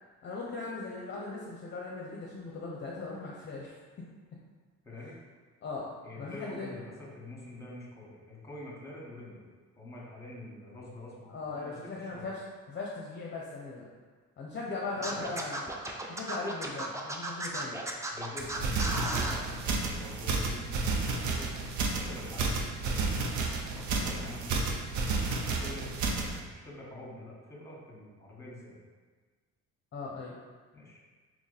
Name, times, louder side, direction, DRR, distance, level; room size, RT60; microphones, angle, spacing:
voice 1, 0.2-3.7 5.6-6.8 11.3-12.4 12.7-13.9 14.4-15.6 16.1-17.8 19.0-19.1 29.9-30.4, left 3 dB, 40° left, -3 dB, 0.5 m, -39 dB
voice 2, 6.0-9.5 9.8-12.3 14.9-15.4 18.1-21.6 21.9-23.3 23.8-24.7 25.4-28.8 30.7-31.0, left 2 dB, 10° left, -5 dB, 1.2 m, -46 dB
Scratching (performance technique), 15.0-19.4, right 2 dB, 10° right, 0.3 m, -35 dB
sound 1, 18.4-26.4, right 3 dB, 75° right, 0.6 m, -31 dB
2.9 x 2.6 x 3.9 m, 1.4 s
cardioid pair, 90°, 30 cm